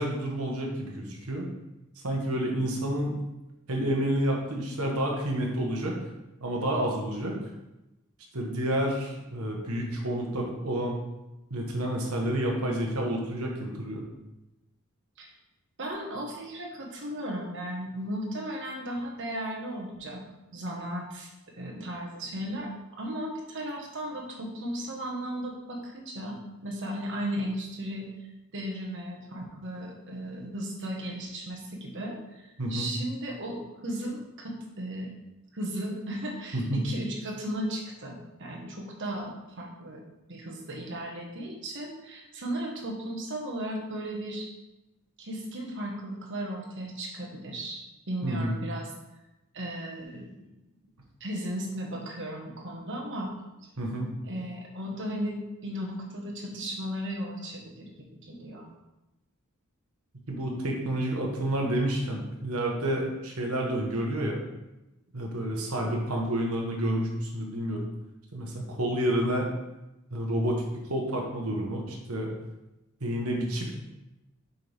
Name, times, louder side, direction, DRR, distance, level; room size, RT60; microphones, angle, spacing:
voice 1, 0.0-1.5 2.0-3.2 3.7-5.9 6.4-7.4 8.3-11.0 11.5-14.0 32.6-32.9 36.5-36.8 48.2-48.5 53.8-54.1 60.3-64.4 65.1-67.8 68.3-69.5 70.1-70.6 70.9-72.3 73.0-73.8, right 1 dB, 80° right, 0 dB, 1.3 m, -29 dB
voice 2, 15.8-20.2 20.5-21.3 21.6-22.7 23.0-26.4 26.6-28.1 28.5-35.1 35.5-40.0 40.3-44.5 45.2-47.8 48.1-48.9 49.5-50.6 51.2-53.3 53.8-57.9 58.3-58.7, right 1 dB, 60° right, 0 dB, 1.4 m, -35 dB
6.7 x 5.6 x 3.5 m, 0.98 s
head